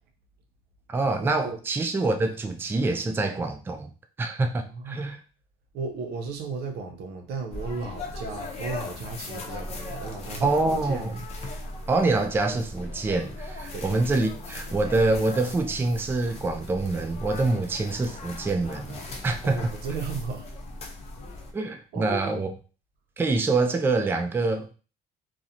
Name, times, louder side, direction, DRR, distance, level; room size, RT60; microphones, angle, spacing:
voice 1, 0.9-3.9 4.2-5.2 10.4-11.2 11.9-19.6 21.5-22.5 23.2-24.7, right 3 dB, 15° right, 0.3 m, -26 dB
voice 2, 4.7-5.1 5.7-11.3 11.6-11.8 13.7-13.9 19.4-20.5 21.9-22.4, right 4 dB, 70° right, 0.6 m, -35 dB
sound 1, 7.5-21.5, left 2 dB, 40° left, 0.6 m, -38 dB
2.5 x 2.0 x 2.8 m
cardioid pair, 110°, 17 cm